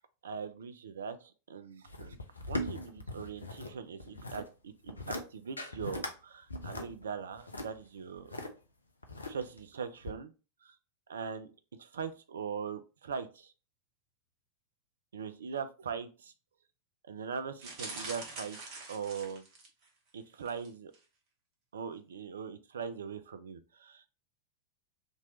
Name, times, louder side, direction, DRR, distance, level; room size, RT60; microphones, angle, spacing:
voice 1, 0.2-2.2 2.5-8.3 9.3-10.3 10.6-10.8 11.1-11.5 11.8-13.5 15.1-16.3 17.1-19.4 20.1-20.9 21.7-24.0, right 6 dB, 65° right, 10 dB, 0.4 m, -41 dB
sound 1, 1.9-3.7 4.0-4.5 4.9-5.2 5.6-6.1 6.5-8.5 9.0-9.6 10.0-10.1, left 1 dB, 80° left, 0.5 m, -39 dB
sound 2, 17.6-19.9 20.4-20.7 20.9-21.0, right 3 dB, 40° right, 1.0 m, -44 dB
2.9 x 2.6 x 3.1 m, 0.32 s
figure-of-eight pair, 90°, 0 cm